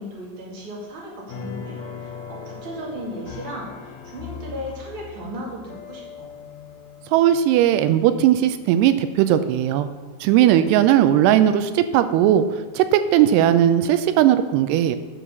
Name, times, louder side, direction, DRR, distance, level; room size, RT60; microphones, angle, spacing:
voice 1, 0.0-6.3, equal, 35° right, -4 dB, 2.4 m, -36 dB
sound 1, 1.3-8.5 9.0-9.6, left 6 dB, 85° left, 1.5 m, -39 dB
voice 2, 7.1-9.9 10.2-12.4 12.7-15.0, right 11 dB, 85° right, 11 dB, 2.6 m, -17 dB
12.0 x 4.7 x 6.7 m, 1.3 s
omnidirectional pair, 4.7 m